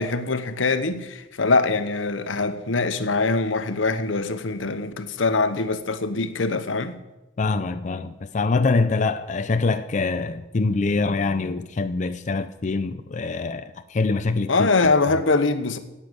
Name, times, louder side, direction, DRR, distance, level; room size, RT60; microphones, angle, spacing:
voice 1, 0.0-7.0 14.5-15.8, left 3 dB, 85° left, 1.0 m, -23 dB
voice 2, 7.4-14.7, left 3 dB, 40° left, 0.5 m, -24 dB
10.0 x 8.8 x 7.9 m
head